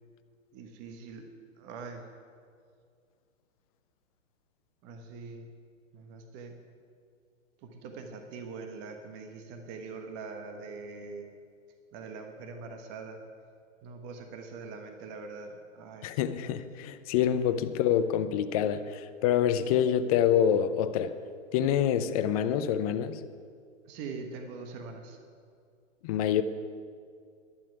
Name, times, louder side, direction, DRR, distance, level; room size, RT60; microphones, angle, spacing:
voice 1, 0.5-1.2 1.6-2.0 4.8-5.5 5.9-6.5 7.6-11.3 11.9-13.2 13.8-16.1 23.9-25.2, right 4 dB, 30° right, 1.3 m, -43 dB
voice 2, 16.0-21.2 21.5-23.2 26.0-26.4, left 9 dB, 30° left, 0.6 m, -26 dB
11.5 x 7.5 x 9.0 m
hypercardioid pair, 125°, 37 cm